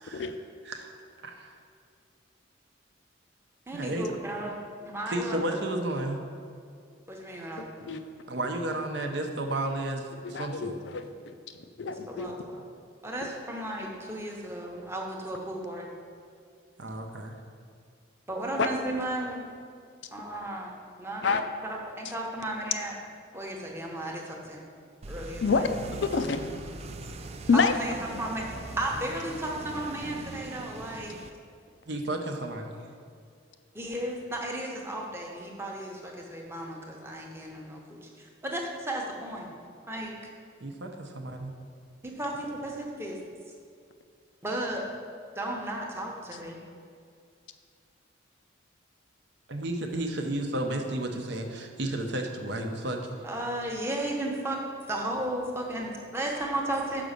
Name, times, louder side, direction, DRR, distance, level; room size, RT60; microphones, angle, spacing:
voice 1, 1.2-1.5 3.7-4.2 5.1-6.2 8.3-10.7 16.8-17.3 31.9-32.8 40.6-41.5 49.5-53.0, right 1 dB, 60° right, 3 dB, 0.7 m, -32 dB
voice 2, 3.7-4.6 4.8-5.4 7.1-8.0 11.8-12.6 13.0-15.9 18.3-19.4 20.1-20.7 21.0-23.0 23.3-24.6 25.1-25.7 27.5-27.9 28.2-28.5 28.8-31.2 33.7-39.5 39.9-40.1 42.0-43.2 44.4-44.8 45.4-46.6 53.2-54.6 54.9-57.0, right 1 dB, 10° right, -1 dB, 0.9 m, -34 dB
voice 3, 7.6-8.0 10.2-11.4 11.8-12.3 18.6-18.7 21.2-21.4 25.4-25.7 26.0-26.4 27.5-27.8, left 4 dB, 60° left, 8 dB, 0.4 m, -27 dB
sound 1, 25.0-31.3, right 2 dB, 30° right, 0.3 m, -41 dB
6.0 x 5.1 x 6.6 m, 2.3 s
head